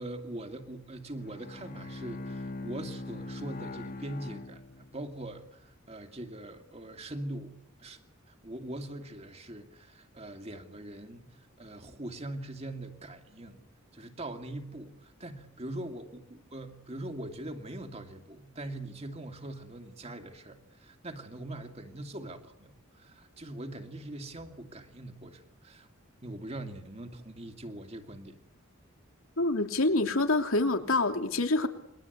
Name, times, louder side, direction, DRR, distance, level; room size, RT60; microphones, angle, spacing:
voice 1, 0.0-8.0 8.3-13.6 13.9-25.9 26.2-28.4, right 1 dB, 30° right, 6 dB, 2.4 m, -42 dB
Bowed string instrument, 1.1-5.2, left 2 dB, 45° left, 1.6 m, -41 dB
voice 2, 29.4-31.7, left 2 dB, 90° left, 5 dB, 3.0 m, -26 dB
28.5 x 22.5 x 8.2 m, 0.78 s
head